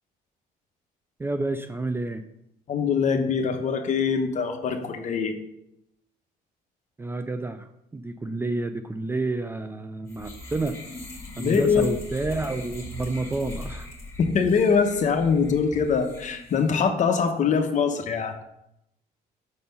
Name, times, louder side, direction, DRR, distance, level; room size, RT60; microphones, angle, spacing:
voice 1, 1.2-2.2 7.0-10.8 11.4-13.9, right 2 dB, 15° right, 9 dB, 0.4 m, -29 dB
voice 2, 2.7-5.3 11.4-11.9 14.2-18.3, left 6 dB, 45° left, 5 dB, 1.1 m, -23 dB
sound 1, 10.1-16.7, left 1 dB, 15° left, 2.0 m, -40 dB
6.6 x 4.3 x 5.4 m, 0.81 s
cardioid pair, 110°, 17 cm